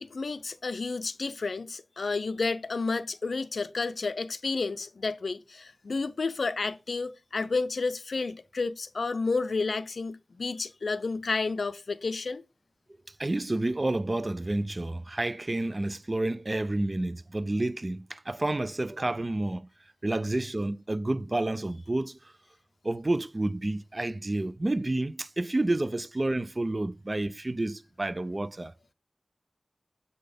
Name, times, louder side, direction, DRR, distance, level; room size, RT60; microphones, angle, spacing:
voice 1, 0.0-12.4, left 4 dB, 85° left, 0.5 m, -31 dB
voice 2, 13.2-19.6 20.0-22.2 22.8-28.7, right 2 dB, 40° right, 0.4 m, -30 dB
6.6 x 4.0 x 5.1 m
wide cardioid pair, 60°, 0 cm